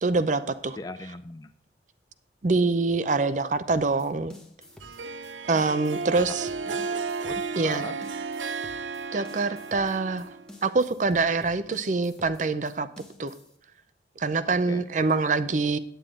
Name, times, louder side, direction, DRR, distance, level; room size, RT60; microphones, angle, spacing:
voice 1, 0.0-0.8 2.4-4.3 5.5-6.5 7.6-7.9 9.1-10.3 10.6-12.9 13.2-13.3 14.2-15.8, right 3 dB, 40° right, 13 dB, 0.5 m, -25 dB
voice 2, 0.8-1.5 6.2-6.4 6.7-6.8 7.2-8.0 14.5-14.8, left 2 dB, 20° left, 9 dB, 0.4 m, -39 dB
sound 1, 3.7-13.6, left 1 dB, 5° left, 1.0 m, -50 dB
Harp, 4.8-10.6, right 4 dB, 85° right, 0.6 m, -33 dB
9.4 x 9.1 x 3.7 m, 0.66 s
head